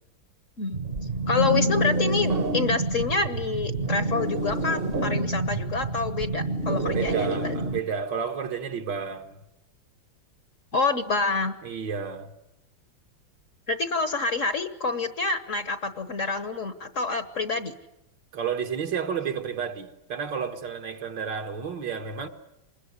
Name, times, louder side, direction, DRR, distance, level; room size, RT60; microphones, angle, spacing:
sound 1, 0.7-7.8, right 2 dB, 35° right, 1.2 m, -27 dB
voice 1, 1.3-7.6 10.7-11.5 13.7-17.7, left 4 dB, 45° left, 1.3 m, -27 dB
voice 2, 6.9-9.4 11.6-12.3 18.3-22.3, right 6 dB, 65° right, 2.1 m, -31 dB
26.0 x 21.0 x 9.7 m
omnidirectional pair, 2.1 m